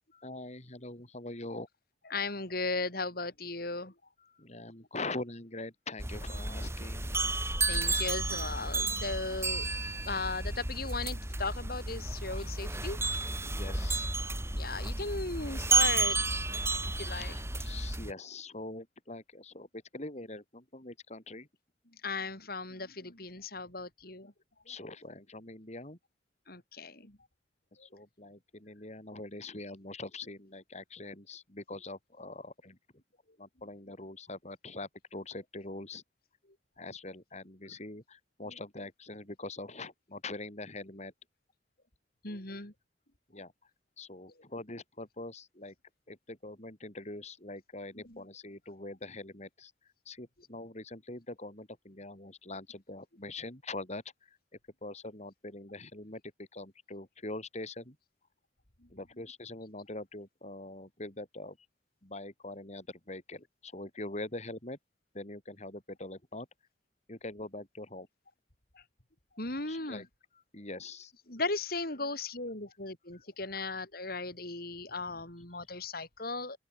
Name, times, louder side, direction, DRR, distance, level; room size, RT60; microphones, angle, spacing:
voice 1, 0.1-1.7 4.2-7.1 12.3-12.5 13.4-14.1 15.4-15.5 17.1-21.5 24.7-26.0 27.8-32.8 33.4-36.0 36.8-41.1 43.3-43.5 44.0-45.7 46.1-49.7 50.0-54.4 54.8-58.0 58.9-61.6 62.0-64.8 65.1-66.5 67.1-68.1 69.7-70.0 70.5-71.1 73.1-73.2, left 2 dB, 40° left, 4.6 m, -43 dB
voice 2, 2.0-3.9 7.6-13.0 14.5-16.2 16.9-17.4 22.0-24.3 24.7-24.8 26.5-27.2 27.8-27.9 38.4-38.6 42.2-42.7 47.9-48.2 50.4-50.5 58.8-58.9 59.1-59.2 68.7-68.8 69.4-70.1 71.3-76.6, left 3 dB, 55° left, 5.4 m, -37 dB
sound 1, 6.0-18.1, right 3 dB, 15° right, 3.6 m, -32 dB
open air
head